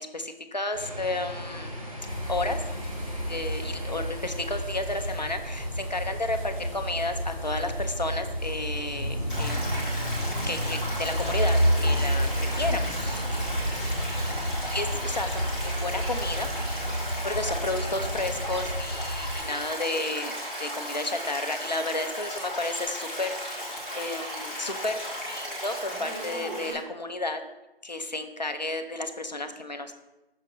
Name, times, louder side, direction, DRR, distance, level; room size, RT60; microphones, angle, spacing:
voice 1, 0.0-1.8 2.3-2.6 3.3-10.0 10.5-16.5 17.2-20.3 20.6-27.4 27.8-29.9, left 2 dB, 45° left, 7 dB, 0.6 m, -32 dB
sound 1, 0.7-18.7, equal, 35° right, 1.2 m, -32 dB
sound 2, 2.1-19.4, equal, 10° left, 2.0 m, -34 dB
Stream, 9.3-26.7, equal, 10° right, 1.0 m, -35 dB
6.4 x 3.7 x 5.5 m, 0.98 s
figure-of-eight pair, 170°, 30 cm